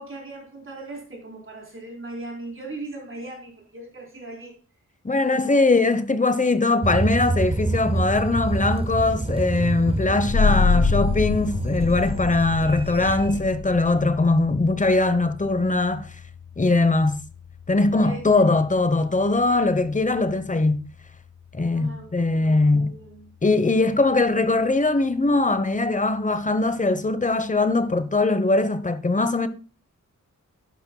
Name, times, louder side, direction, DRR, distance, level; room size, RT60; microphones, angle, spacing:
voice 1, 0.0-4.6 5.3-5.6 18.0-18.5 21.7-23.3 23.8-24.2, right 2 dB, 45° right, 4.3 m, -39 dB
voice 2, 5.0-16.1 16.6-17.2 17.7-20.8 21.5-23.0 23.4-29.5, left 2 dB, 25° left, 1.0 m, -21 dB
sound 1, 6.8-13.4, right 2 dB, 20° right, 0.7 m, -27 dB
sound 2, 10.3-21.5, left 4 dB, 65° left, 1.0 m, -28 dB
12.0 x 10.5 x 2.3 m
wide cardioid pair, 125°, 30 cm